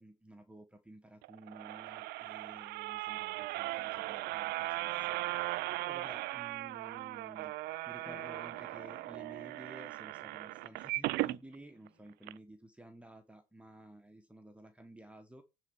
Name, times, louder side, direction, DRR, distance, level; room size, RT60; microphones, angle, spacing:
voice 1, 0.0-7.5 7.9-15.4, right 1 dB, 5° right, 6 dB, 1.3 m, -54 dB
sound 1, 1.2-11.4 11.9-12.0 12.2-12.3, right 19 dB, 70° right, 0.4 m, -38 dB
sound 2, 8.0-12.2, left 9 dB, 55° left, 1.2 m, -61 dB
9.7 x 4.4 x 7.0 m, 0.27 s
supercardioid pair, 75°, 17 cm